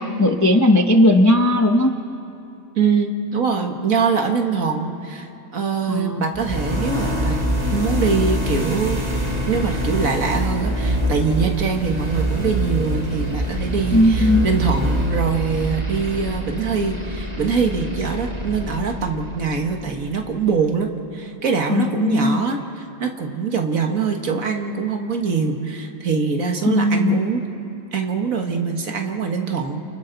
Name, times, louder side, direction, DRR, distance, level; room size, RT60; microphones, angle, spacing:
voice 1, 0.0-1.9 5.9-6.2 13.9-14.4 21.7-22.4 26.6-27.2, left 1 dB, 20° left, 4 dB, 0.5 m, -17 dB
voice 2, 2.8-7.4 7.7-9.0 9.5-27.4 27.9-29.8, right 5 dB, 55° right, 4 dB, 1.8 m, -23 dB
sound 1, 6.3-20.2, equal, 25° right, 2.2 m, -25 dB
29.0 x 29.0 x 4.0 m, 2.8 s
omnidirectional pair, 1.8 m